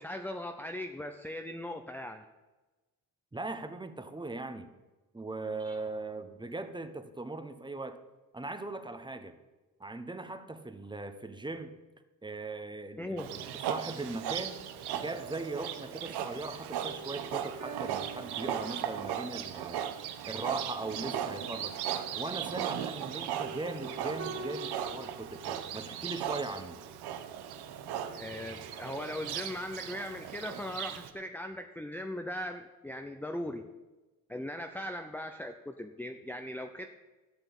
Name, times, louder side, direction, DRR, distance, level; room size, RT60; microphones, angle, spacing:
voice 1, 0.0-2.2 5.6-5.8 13.0-13.3 28.1-33.7 34.3-36.9, left 1 dB, 5° left, 5 dB, 0.7 m, -39 dB
voice 2, 3.3-4.7 5.1-8.0 8.3-9.4 9.8-11.7 12.2-14.6 14.9-19.8 20.2-21.8 22.2-26.8, right 2 dB, 10° right, 9 dB, 1.1 m, -39 dB
Livestock farm animals working animals, 13.2-31.1, right 10 dB, 90° right, 1.2 m, -37 dB
sound 1, 14.5-29.6, right 3 dB, 45° right, 3.1 m, -48 dB
13.0 x 6.7 x 8.3 m, 1.2 s
cardioid pair, 105°, 38 cm